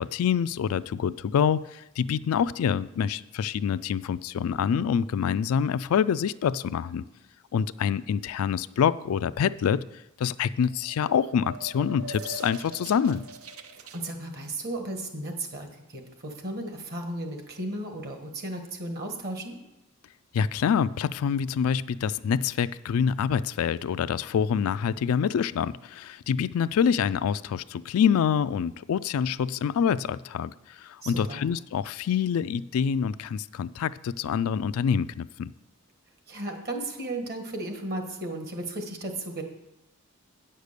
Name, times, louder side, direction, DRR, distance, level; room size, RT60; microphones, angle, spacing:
voice 1, 0.0-7.0 7.5-9.8 10.2-13.3 20.3-30.5 30.8-35.5, left 7 dB, 70° left, 15 dB, 0.3 m, -26 dB
sound 1, 10.7-14.0, right 2 dB, 75° right, 0.7 m, -42 dB
voice 2, 13.8-19.6 31.0-31.4 36.3-39.4, right 1 dB, 45° right, 4 dB, 1.6 m, -35 dB
8.9 x 6.6 x 6.7 m, 0.93 s
head